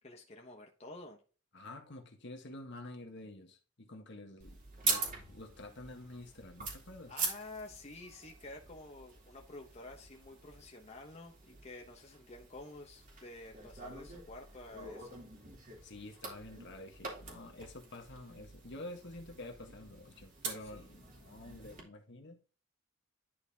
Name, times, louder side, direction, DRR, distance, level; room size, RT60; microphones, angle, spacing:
voice 1, 0.0-1.2 7.1-15.2 20.6-20.9, left 2 dB, 30° left, 1.1 m, -50 dB
voice 2, 1.5-7.1 15.8-22.4, left 2 dB, 60° left, 1.5 m, -49 dB
sound 1, 4.4-21.8, right 4 dB, 40° right, 2.6 m, -43 dB
11.0 x 4.3 x 3.5 m
head